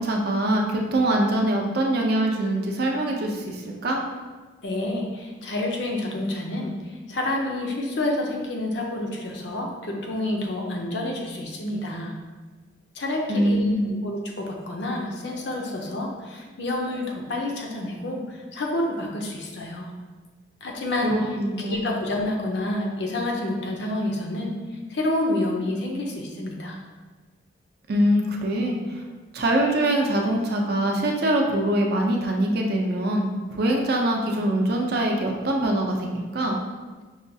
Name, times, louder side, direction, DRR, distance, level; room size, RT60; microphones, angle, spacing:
voice 1, 0.0-4.0 13.3-13.9 21.0-21.9 27.9-28.8 29.3-36.6, right 1 dB, 55° right, 1 dB, 0.5 m, -23 dB
voice 2, 4.6-6.8 7.1-12.1 12.9-19.9 20.6-21.3 21.6-24.5 24.9-26.8, left 1 dB, 65° left, 0 dB, 0.6 m, -28 dB
5.5 x 2.3 x 2.7 m, 1.3 s
head